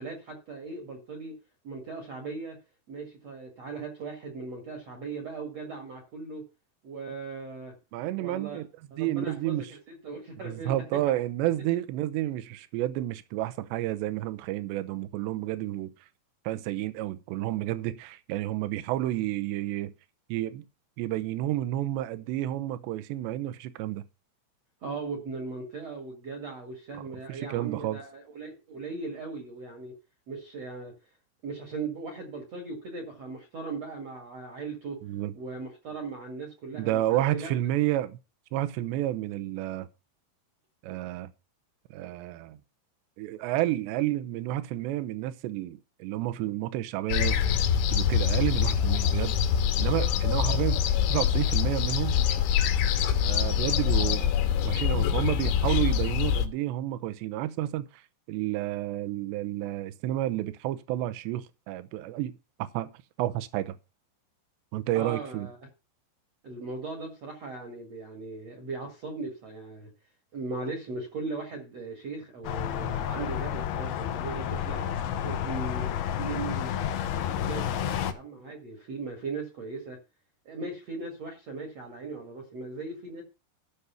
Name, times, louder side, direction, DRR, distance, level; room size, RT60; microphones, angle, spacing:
voice 1, 0.0-1.4 1.6-2.6 2.9-6.5 6.8-7.7 8.2-8.6 8.9-11.2 24.8-30.0 30.3-30.9 31.4-35.0 35.3-37.5 64.9-65.6 66.4-69.9 70.3-76.7 77.1-80.0 80.5-83.2, right 3 dB, 45° right, 2.3 m, -38 dB
voice 2, 7.9-8.6 9.0-9.7 10.4-15.9 16.5-19.9 20.3-20.6 21.0-24.1 27.3-28.0 35.0-35.3 36.7-38.2 38.5-39.9 40.8-41.3 41.9-42.6 43.2-47.4 47.9-49.4 49.8-50.8 51.1-52.2 53.2-54.3 54.6-57.9 58.3-62.3 62.6-62.9 63.2-63.8 64.7-65.5, right 14 dB, 75° right, 3.0 m, -30 dB
sound 1, 47.1-56.5, left 8 dB, 90° left, 3.6 m, -25 dB
sound 2, 72.4-78.1, left 10 dB, 70° left, 2.5 m, -31 dB
12.5 x 6.5 x 5.8 m
omnidirectional pair, 5.3 m